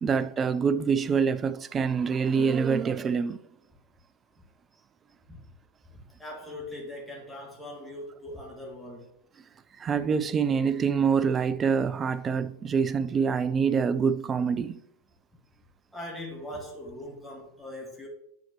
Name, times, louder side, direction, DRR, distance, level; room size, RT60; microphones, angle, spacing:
voice 1, 0.0-3.4 9.8-14.8, right 6 dB, 20° right, 0.4 m, -25 dB
voice 2, 5.9-9.1 15.9-18.1, left 1 dB, 5° left, 1.8 m, -41 dB
9.4 x 4.3 x 3.0 m
figure-of-eight pair, 90°, 0 cm